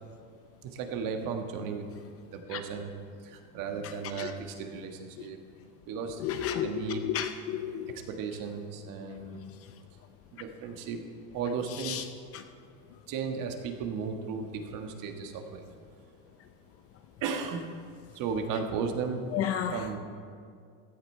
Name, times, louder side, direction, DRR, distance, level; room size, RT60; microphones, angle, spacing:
voice 1, 0.6-1.9 2.3-2.9 3.2-5.4 5.9-6.2 6.6-7.3 7.9-9.4 10.3-11.0 11.3-12.0 13.1-15.7 17.2-17.7 18.1-19.3 19.6-20.0, right 5 dB, 45° right, 5 dB, 1.6 m, -35 dB
voice 2, 6.2-7.9 11.9-12.0 12.3-12.4 19.3-19.8, left 10 dB, 35° left, 8 dB, 0.6 m, -31 dB
15.5 x 10.5 x 4.4 m, 2.2 s
supercardioid pair, 130°, 43 cm